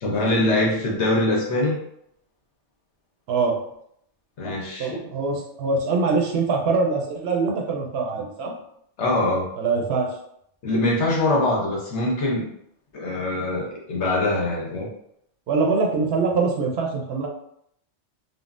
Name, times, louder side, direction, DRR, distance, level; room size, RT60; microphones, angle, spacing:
voice 1, 0.0-1.8 4.4-5.0 9.0-9.5 10.6-12.5 12.9-14.9, left 2 dB, 70° left, -3 dB, 1.1 m, -23 dB
voice 2, 3.3-3.6 4.8-8.5 9.6-10.1 15.5-17.3, right 4 dB, 65° right, 1 dB, 0.8 m, -23 dB
3.7 x 2.0 x 2.4 m, 0.72 s
omnidirectional pair, 1.2 m